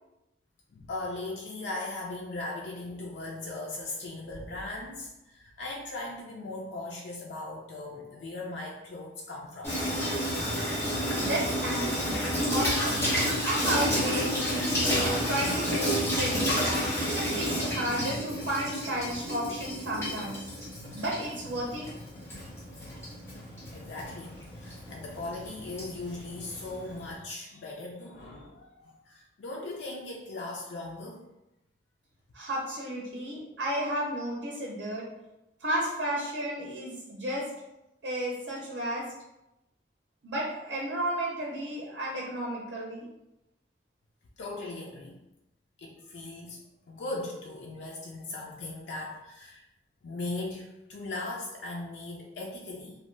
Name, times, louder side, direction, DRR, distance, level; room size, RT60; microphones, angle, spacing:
voice 1, 0.7-9.8 23.7-24.3 24.6-31.2 44.4-45.2 45.8-49.6 50.0-52.9, left 2 dB, 85° left, -1 dB, 0.4 m, -38 dB
Water tap faucet / Sink (filling or washing), 9.6-27.1, equal, 15° left, 0.8 m, -31 dB
voice 2, 11.1-12.2 12.5-13.0 13.4-16.4 17.1-20.4 20.9-21.8 32.3-35.0 35.6-37.4 38.0-39.0 40.2-43.1, right 1 dB, 85° right, -4 dB, 0.6 m, -32 dB
2.7 x 2.2 x 3.1 m, 0.92 s
head